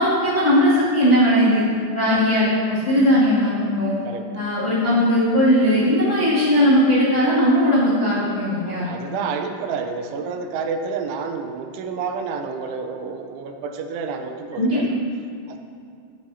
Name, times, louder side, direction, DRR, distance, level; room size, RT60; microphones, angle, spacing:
voice 1, 0.0-1.6 1.9-4.0 4.3-8.9 14.5-14.8, equal, 35° left, -12 dB, 1.0 m, -18 dB
voice 2, 4.0-4.4 8.6-14.9 15.5-15.6, right 5 dB, 85° right, 5 dB, 3.1 m, -29 dB
14.5 x 8.1 x 2.8 m, 2.3 s
omnidirectional pair, 5.5 m